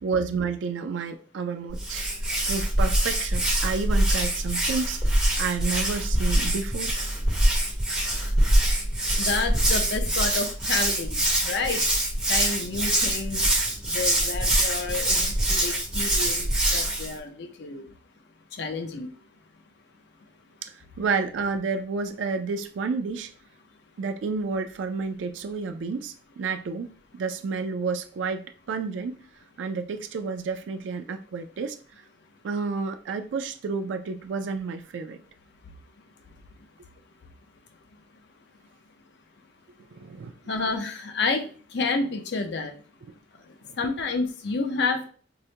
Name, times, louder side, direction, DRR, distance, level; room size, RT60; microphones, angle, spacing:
voice 1, 0.0-2.1 2.5-6.9 20.6-23.3 24.0-29.2 29.6-31.8 32.4-35.2 39.9-40.3 43.7-43.8, right 5 dB, 90° right, 0.4 m, -30 dB
Hands, 1.7-17.1, right 1 dB, 5° right, 1.0 m, -24 dB
voice 2, 9.2-11.8 12.3-13.4 13.9-17.8 18.6-19.1 40.5-41.5 41.7-42.7 43.8-45.1, left 3 dB, 65° left, 0.6 m, -29 dB
4.7 x 2.1 x 2.7 m
head